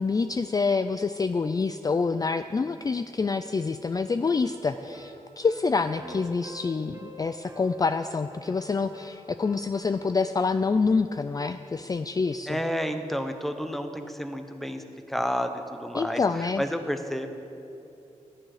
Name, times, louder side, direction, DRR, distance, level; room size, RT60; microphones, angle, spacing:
voice 1, 0.0-12.6 15.9-16.6, left 4 dB, 30° left, 10 dB, 0.4 m, -27 dB
sound 1, 4.2-10.2, equal, 25° right, 1.7 m, -48 dB
voice 2, 12.5-17.3, equal, ahead, 7 dB, 1.0 m, -31 dB
16.0 x 10.5 x 4.9 m, 2.8 s
wide cardioid pair, 85°, 13 cm